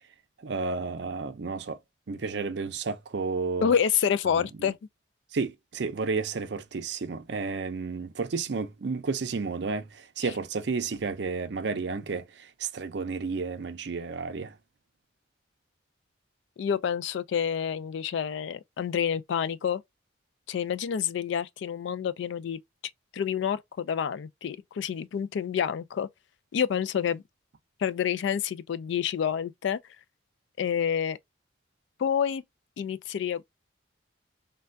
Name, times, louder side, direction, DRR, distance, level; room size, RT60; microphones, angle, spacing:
voice 1, 0.4-1.8 2.1-3.7 4.3-4.4 5.3-14.5, right 4 dB, 60° right, 0.5 m, -32 dB
voice 2, 3.6-4.8 10.2-10.3 16.6-19.8 20.5-22.6 23.1-26.1 26.5-27.2 27.8-29.8 30.6-31.2 32.0-32.4 32.8-33.4, left 8 dB, 65° left, 0.3 m, -28 dB
3.3 x 2.2 x 2.5 m
head